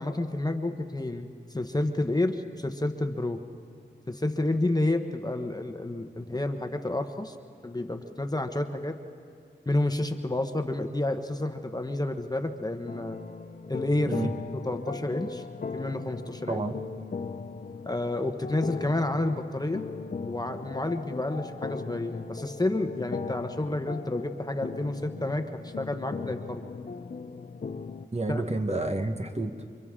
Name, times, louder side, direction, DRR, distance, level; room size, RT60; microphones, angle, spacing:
voice 1, 0.0-3.4 4.1-7.4 7.6-9.0 9.7-13.2 13.7-14.2 14.6-15.4 15.7-16.6 17.8-19.8 20.3-26.6 28.3-28.4, left 2 dB, 20° left, 6 dB, 1.0 m, -30 dB
sound 1, 12.9-28.1, left 5 dB, 45° left, 0.6 m, -38 dB
voice 2, 16.5-16.8 28.1-29.5, right 2 dB, 35° right, 5 dB, 1.3 m, -29 dB
29.0 x 25.0 x 3.7 m, 2.3 s
wide cardioid pair, 80°, 19 cm